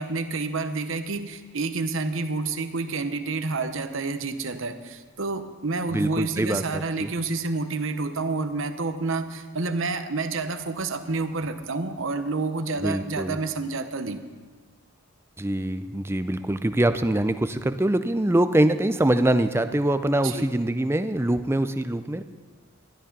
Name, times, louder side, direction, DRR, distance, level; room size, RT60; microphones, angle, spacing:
voice 1, 0.0-14.2 20.2-20.5, right 3 dB, 60° right, 8 dB, 0.9 m, -29 dB
voice 2, 5.9-7.1 12.7-13.4 15.4-22.2, right 1 dB, 10° right, 10 dB, 0.4 m, -24 dB
12.5 x 12.5 x 5.3 m, 1.4 s
head